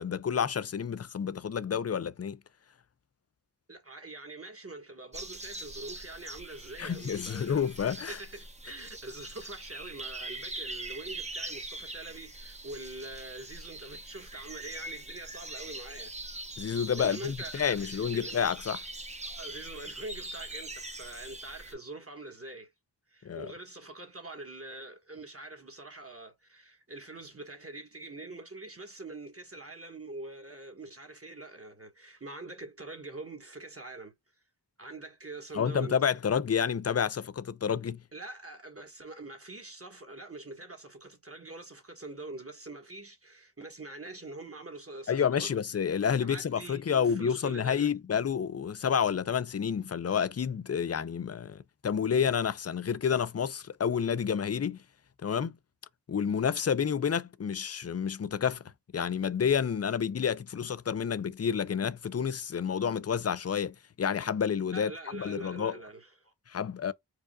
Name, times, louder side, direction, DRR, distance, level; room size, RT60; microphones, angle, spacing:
voice 1, 0.0-2.4 6.8-8.1 16.6-18.8 23.2-23.5 35.5-38.0 45.1-54.8 55.2-55.5 56.1-58.6 58.9-65.8 66.5-66.9, left 7 dB, 40° left, 0.4 m, -29 dB
voice 2, 3.7-7.6 8.0-16.1 17.0-18.3 19.2-22.7 23.1-34.1 34.8-36.0 38.1-45.5 46.2-47.9 64.7-66.3, right 2 dB, 35° right, 1.4 m, -44 dB
sound 1, 5.1-21.7, right 2 dB, 15° right, 0.9 m, -42 dB
4.8 x 2.3 x 2.3 m
wide cardioid pair, 55°, 41 cm